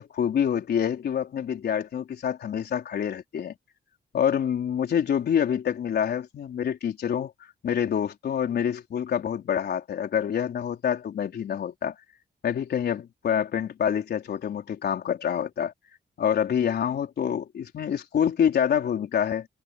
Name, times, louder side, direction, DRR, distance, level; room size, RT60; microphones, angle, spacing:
voice 1, 0.0-3.5 4.1-7.3 7.6-11.9 12.4-15.7 16.2-19.5, left 8 dB, 70° left, 4.3 m, -26 dB
wide cardioid pair, 160°, 17 cm